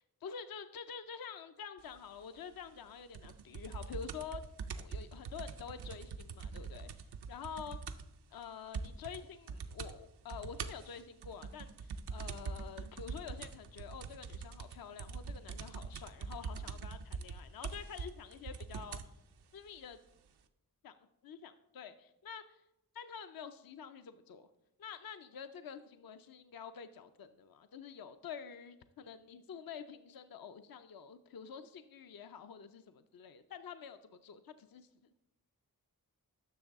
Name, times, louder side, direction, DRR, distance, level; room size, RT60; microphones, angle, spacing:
voice 1, 0.2-4.4 4.7-6.9 7.3-7.8 8.3-19.1 19.5-20.0 20.8-20.9 21.2-22.6 22.9-24.5 24.8-34.9, left 7 dB, 65° left, 10 dB, 0.5 m, -48 dB
sound 1, 3.1-8.2 8.4-8.5 8.7-9.2 9.5-9.9 10.3-19.1 19.9-20.0, right 5 dB, 90° right, 0.6 m, -43 dB
10.5 x 6.4 x 3.5 m, 0.88 s
wide cardioid pair, 50°, 38 cm